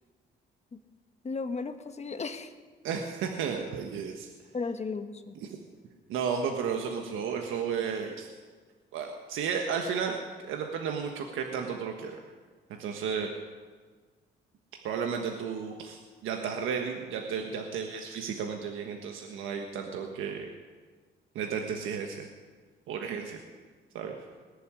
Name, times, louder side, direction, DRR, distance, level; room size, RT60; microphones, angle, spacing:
voice 1, 1.2-2.5 4.5-5.3, left 4 dB, 35° left, 8 dB, 1.3 m, -35 dB
voice 2, 2.8-4.3 5.4-5.6 6.1-8.3 8.9-10.2 10.4-12.2 12.8-13.3 14.8-20.5 21.3-22.3 22.9-23.4 23.9-24.1, right 6 dB, 85° right, 3 dB, 1.4 m, -33 dB
20.0 x 7.0 x 9.8 m, 1.5 s
cardioid pair, 90°, 20 cm